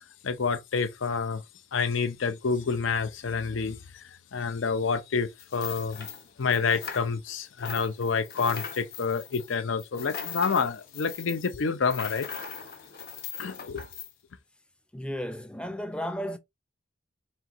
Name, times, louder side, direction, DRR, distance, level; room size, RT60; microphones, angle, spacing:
voice 1, 0.2-1.4 1.7-3.8 4.3-6.1 6.4-12.3 13.4-13.8, left 5 dB, 80° left, 0.6 m, -28 dB
sound 1, 5.4-7.3 7.6-14.1, left 7 dB, 50° left, 1.0 m, -40 dB
voice 2, 14.9-16.4, equal, 5° left, 0.5 m, -34 dB
4.5 x 3.5 x 2.5 m
head